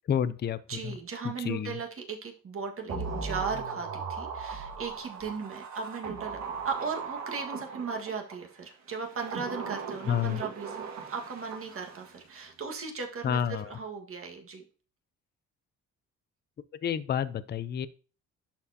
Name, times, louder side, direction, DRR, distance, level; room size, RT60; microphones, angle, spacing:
voice 1, 0.1-0.9 1.4-1.8 10.1-10.4 13.2-13.7 16.8-17.9, left 9 dB, 35° left, 15 dB, 0.5 m, -29 dB
voice 2, 0.7-6.4 6.6-14.6, right 5 dB, 45° right, 2 dB, 1.7 m, -37 dB
sound 1, 2.9-8.4 9.0-12.2 12.5-12.6, right 5 dB, 65° right, 1.7 m, -38 dB
11.0 x 4.4 x 2.8 m, 0.36 s
cardioid pair, 90°, 30 cm